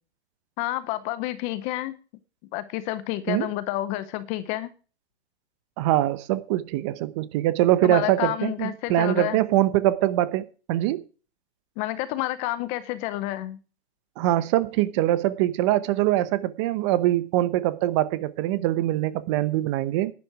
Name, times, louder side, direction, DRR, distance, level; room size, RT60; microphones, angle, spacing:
voice 1, 0.6-1.9 2.5-4.7 7.8-9.4 11.8-13.6, left 15 dB, 20° left, 0.7 m, -29 dB
voice 2, 5.8-11.0 14.2-20.1, right 14 dB, 25° right, 0.9 m, -23 dB
11.5 x 10.5 x 4.8 m
hypercardioid pair, 140°, 34 cm